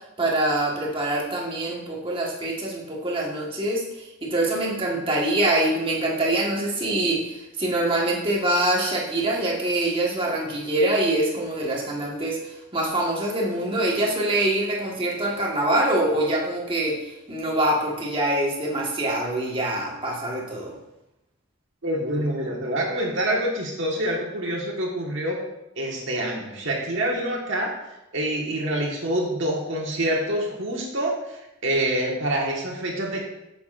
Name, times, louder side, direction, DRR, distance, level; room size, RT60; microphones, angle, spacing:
voice 1, 0.2-20.7, right 1 dB, 25° right, -3 dB, 1.5 m, -24 dB
voice 2, 21.8-25.4 25.7-27.7 28.1-33.2, right 1 dB, 60° right, -2 dB, 1.5 m, -26 dB
8.4 x 7.0 x 2.5 m, 0.92 s
head